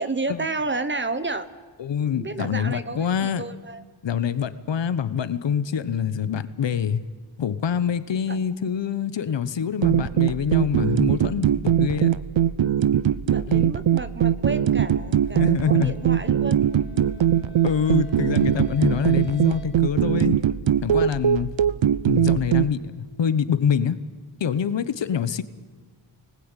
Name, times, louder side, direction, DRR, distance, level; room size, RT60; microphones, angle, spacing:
voice 1, 0.0-1.5 2.2-3.8 8.3-8.4 13.3-16.6, right 3 dB, 25° right, 12 dB, 1.0 m, -31 dB
voice 2, 1.8-3.4 4.0-7.0 7.4-12.1 13.5-13.7 15.3-15.9 17.6-20.4 20.8-21.5 22.1-24.0 24.4-25.4, left 7 dB, 70° left, 13 dB, 1.2 m, -25 dB
sound 1, 9.8-22.7, right 10 dB, 75° right, 0.9 m, -21 dB
sound 2, 13.4-19.7, equal, 25° left, 3.9 m, -44 dB
25.0 x 19.5 x 9.1 m, 1.5 s
wide cardioid pair, 165°, 46 cm